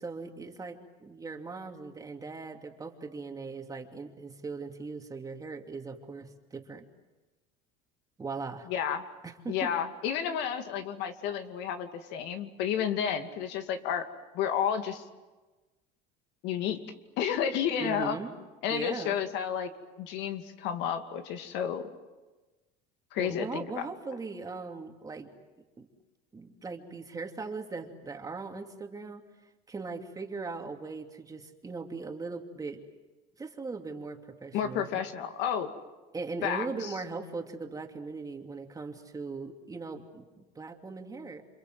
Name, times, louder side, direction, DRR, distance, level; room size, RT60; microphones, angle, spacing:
voice 1, 0.0-6.8 8.2-8.7 9.2-9.7 17.8-18.3 18.7-19.2 23.2-25.3 25.8-25.9 26.3-29.2 29.7-32.8 33.4-34.9 36.1-40.3 40.5-41.4, right 4 dB, 20° right, 4 dB, 2.8 m, -39 dB
voice 2, 8.7-9.0 9.5-14.1 14.3-15.0 16.4-16.8 17.2-18.2 18.6-19.7 20.0-21.9 23.1-23.9 34.5-35.7 36.4-36.9, left 8 dB, 65° left, 7 dB, 2.5 m, -31 dB
29.0 x 26.5 x 7.8 m, 1.2 s
supercardioid pair, 120°, 19 cm